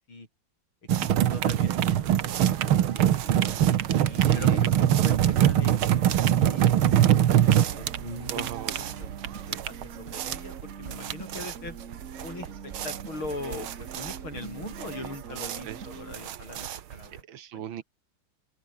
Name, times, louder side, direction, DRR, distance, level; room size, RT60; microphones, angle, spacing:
voice 1, 0.9-2.1 2.3-3.2 3.9-7.2 7.7-9.1 9.4-11.8 12.2-17.2 17.5-17.6, left 2 dB, 85° left, 8.5 m, -41 dB
sound 1, 0.9-17.2, right 11 dB, 90° right, 2.0 m, -24 dB
sound 2, 3.2-16.2, right 5 dB, 40° right, 1.9 m, -44 dB
voice 2, 4.2-4.6 8.3-8.7 15.7-15.8 17.3-17.8, right 10 dB, 75° right, 1.9 m, -37 dB
open air
omnidirectional pair, 2.2 m